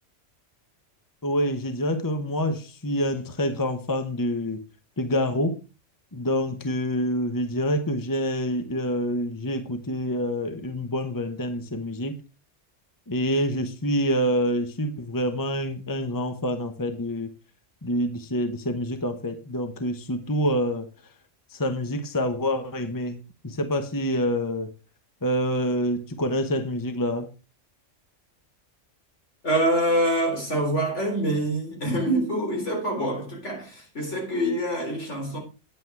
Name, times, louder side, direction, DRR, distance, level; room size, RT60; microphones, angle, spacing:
voice 1, 1.2-4.6 5.0-5.6 6.1-12.1 13.1-17.3 17.8-20.9 21.5-24.7 25.2-27.3, equal, 20° left, 1.1 m, -27 dB
voice 2, 29.4-35.4, right 1 dB, 75° left, 4.1 m, -25 dB
9.8 x 8.4 x 4.7 m
omnidirectional pair, 1.2 m